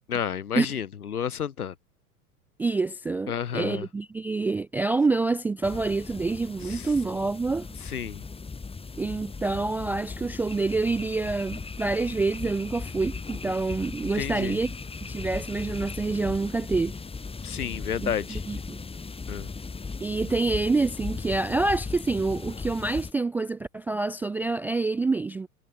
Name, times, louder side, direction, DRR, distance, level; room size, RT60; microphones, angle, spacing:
voice 1, 0.1-1.7 3.3-3.9 6.6-6.9 7.8-8.2 14.1-14.6 17.4-18.4 19.3-19.5, left 8 dB, 75° left, 6.3 m, -31 dB
voice 2, 2.6-7.7 9.0-14.8 15.0-16.9 18.0-18.8 20.0-25.5, right 3 dB, 5° right, 0.4 m, -27 dB
sound 1, 5.6-23.1, left 4 dB, 10° left, 6.6 m, -37 dB
figure-of-eight pair, 95°, 45 cm